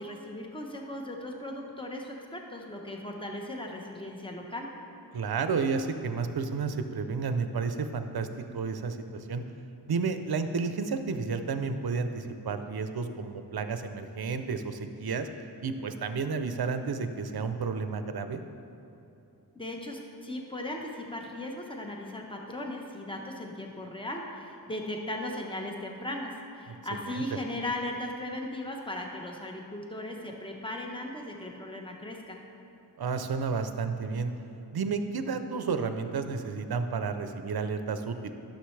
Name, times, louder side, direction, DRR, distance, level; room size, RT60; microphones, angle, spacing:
voice 1, 0.0-4.7 19.5-32.4, left 1 dB, 10° left, 1 dB, 0.9 m, -37 dB
voice 2, 5.1-8.3 8.5-9.4 9.9-15.3 15.6-18.4 26.7-26.8 27.1-27.2 33.0-34.3 34.7-38.3, right 5 dB, 65° right, 8 dB, 0.6 m, -31 dB
11.5 x 6.5 x 3.2 m, 2.8 s
wide cardioid pair, 60°, 41 cm